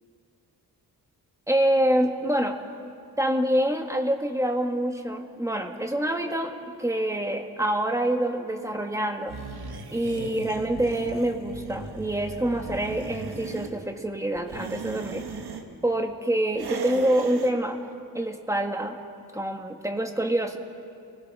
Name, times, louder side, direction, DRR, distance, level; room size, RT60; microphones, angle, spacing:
voice 1, 1.5-2.6 3.2-9.4 9.9-15.3 15.8-17.8 18.1-19.0 19.3-20.6, right 1 dB, 10° right, 4 dB, 1.5 m, -26 dB
sound 1, 9.3-13.7 14.4-15.6 16.5-17.5, right 4 dB, 80° right, 1.9 m, -37 dB
29.5 x 20.5 x 6.2 m, 2.4 s
wide cardioid pair, 140°, 37 cm